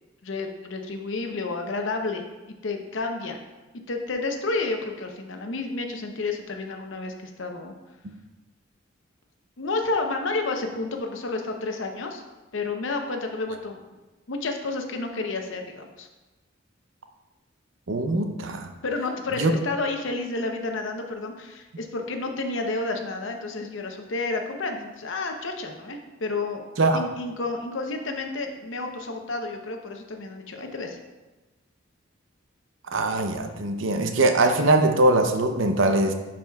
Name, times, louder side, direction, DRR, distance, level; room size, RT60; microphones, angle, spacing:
voice 1, 0.2-2.2 2.6-3.4 3.9-7.7 9.6-12.2 12.5-13.8 14.3-16.1 18.8-26.6 26.9-31.0, left 3 dB, 70° left, 4 dB, 0.8 m, -30 dB
voice 2, 17.9-18.7 19.4-19.5 26.8-27.0 32.9-36.1, right 2 dB, 75° right, 6 dB, 0.7 m, -22 dB
10.5 x 4.9 x 2.3 m, 1.1 s
head